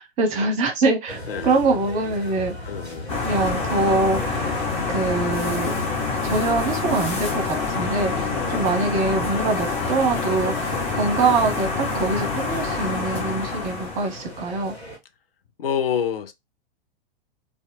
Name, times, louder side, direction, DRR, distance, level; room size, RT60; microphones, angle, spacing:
voice 1, 0.0-2.5 3.2-4.5 4.9-5.7 6.2-14.8, right 3 dB, 25° right, 0.7 m, -24 dB
sound 1, 1.1-15.0, left 1 dB, 85° left, 1.1 m, -39 dB
voice 2, 2.6-3.1 8.1-8.7 10.7-10.9 15.6-16.3, left 8 dB, 65° left, 0.5 m, -28 dB
sound 2, 3.1-14.3, left 4 dB, 20° left, 0.7 m, -26 dB
Alarm, 5.4-11.4, equal, 45° left, 1.8 m, -43 dB
2.7 x 2.1 x 2.6 m
figure-of-eight pair, 100°, 30 cm